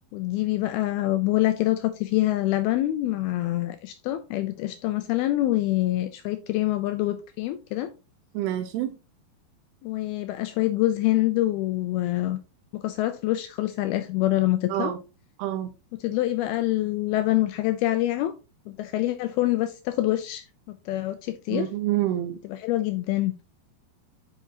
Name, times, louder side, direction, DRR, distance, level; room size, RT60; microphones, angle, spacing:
voice 1, 0.1-7.9 9.8-12.4 12.7-14.9 16.0-18.3 18.7-20.4 20.9-21.7 22.4-23.3, left 16 dB, 85° left, 2.2 m, -25 dB
voice 2, 8.3-8.9 14.7-15.0 15.4-15.7 21.5-22.4, right 13 dB, 80° right, 2.6 m, -27 dB
8.2 x 5.8 x 2.9 m
omnidirectional pair, 4.9 m